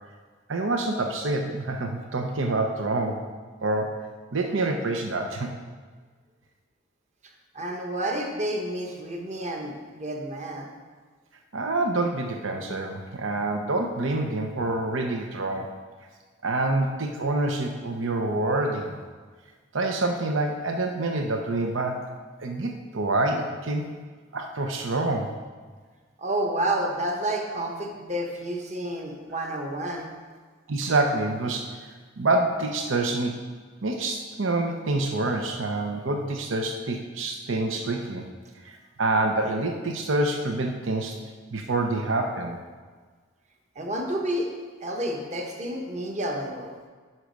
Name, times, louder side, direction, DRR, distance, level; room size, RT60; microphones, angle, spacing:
voice 1, 0.5-3.2 3.6-4.0 4.3-5.5 11.5-15.7 16.4-19.0 19.7-22.1 22.4-23.9 24.3-25.3 30.7-31.8 32.2-33.4 33.8-38.2 38.6-41.2 41.5-42.6, right 2 dB, 80° right, 3 dB, 0.8 m, -27 dB
voice 2, 7.5-10.7 26.2-30.1 43.7-44.5 44.8-46.7, right 1 dB, 35° right, 1 dB, 1.1 m, -30 dB
9.7 x 6.1 x 5.2 m, 1.5 s
head